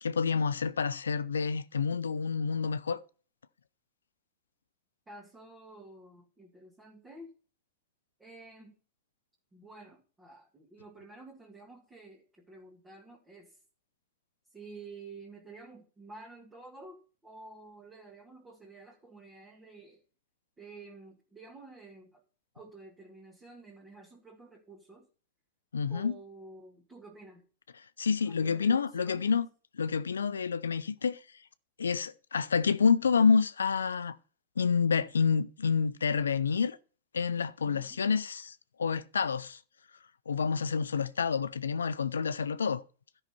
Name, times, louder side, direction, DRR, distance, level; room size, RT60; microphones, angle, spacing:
voice 1, 0.0-3.0 25.7-26.1 28.0-29.5 29.8-31.2 31.8-34.2 34.6-36.8 37.1-39.6 40.3-42.8, left 5 dB, 75° left, 0.5 m, -28 dB
voice 2, 5.1-7.3 8.2-8.8 9.5-13.6 14.5-20.0 20.6-22.2 22.5-25.1 25.9-27.4 28.3-29.4 37.6-38.0, right 3 dB, 15° right, 1.9 m, -51 dB
13.0 x 5.7 x 4.3 m
figure-of-eight pair, 95°, 0 cm